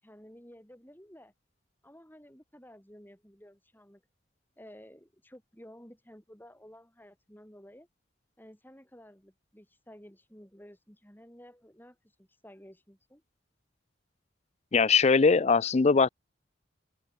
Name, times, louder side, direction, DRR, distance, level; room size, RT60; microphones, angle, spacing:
voice 1, 0.0-1.3 1.8-4.0 4.6-7.9 8.4-13.2, equal, 10° left, 7.0 m, -53 dB
voice 2, 14.7-16.1, left 4 dB, 35° left, 0.4 m, -21 dB
head